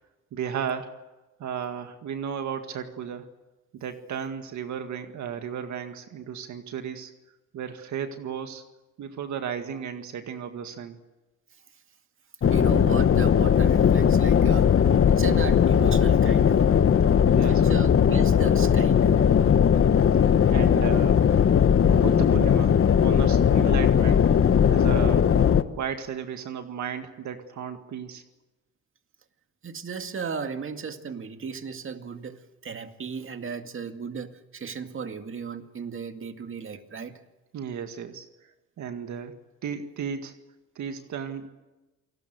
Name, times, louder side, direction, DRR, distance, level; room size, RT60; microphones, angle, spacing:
voice 1, 0.3-1.0 1.4-3.3 3.7-7.1 7.5-8.6 9.0-11.0 17.1-17.8 20.2-21.2 21.9-24.3 24.6-25.3 25.7-28.2 37.5-39.4 39.6-40.3 40.8-41.5, right 7 dB, 70° right, 7 dB, 2.0 m, -34 dB
sound 1, 12.4-25.6, left 8 dB, 45° left, 1.2 m, -19 dB
voice 2, 12.5-14.7 15.1-16.6 17.4-19.2 29.6-37.2, right 6 dB, 45° right, 7 dB, 2.2 m, -36 dB
28.0 x 19.0 x 8.1 m, 1.1 s
cardioid pair, 90°, 30 cm